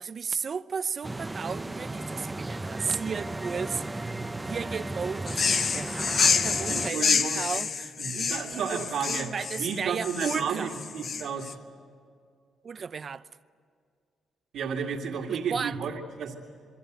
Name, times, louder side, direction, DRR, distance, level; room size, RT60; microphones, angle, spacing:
voice 1, 0.0-10.7 12.6-13.3 15.3-15.8, right 6 dB, 45° right, 0.7 m, -34 dB
sound 1, 1.0-6.9, right 2 dB, 15° right, 0.8 m, -35 dB
sound 2, 5.3-11.5, left 5 dB, 50° left, 1.0 m, -28 dB
voice 2, 6.7-7.4 8.0-11.6 14.5-16.3, right 6 dB, 75° right, 2.2 m, -32 dB
27.5 x 22.5 x 8.1 m
cardioid pair, 90°, 0 cm